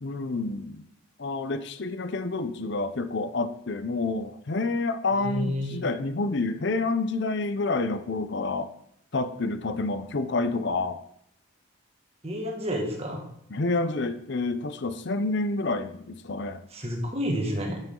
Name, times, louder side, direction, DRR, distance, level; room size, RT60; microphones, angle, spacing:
voice 1, 0.0-0.8 1.2-8.7 9.1-11.0 13.5-16.6, left 3 dB, 55° left, 10 dB, 0.6 m, -28 dB
voice 2, 5.2-5.8 12.2-13.2 16.7-17.8, equal, 30° right, 1 dB, 1.9 m, -30 dB
9.5 x 9.0 x 3.8 m, 0.74 s
head